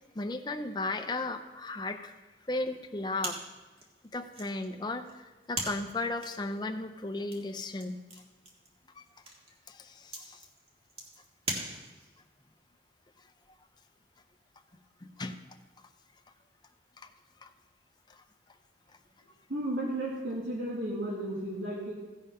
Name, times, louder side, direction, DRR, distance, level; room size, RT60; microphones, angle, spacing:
voice 1, 0.1-2.1 2.5-3.4 4.1-8.0 9.0-9.1 9.7-10.5 15.0-15.4 17.0-17.1 17.4-17.5 18.1-18.2, left 2 dB, 25° left, 7 dB, 0.6 m, -35 dB
sound 1, 3.2-12.2, right 1 dB, 30° right, 1.7 m, -42 dB
voice 2, 19.5-21.9, right 1 dB, 75° right, -6 dB, 2.2 m, -33 dB
15.5 x 5.5 x 5.5 m, 1.3 s
head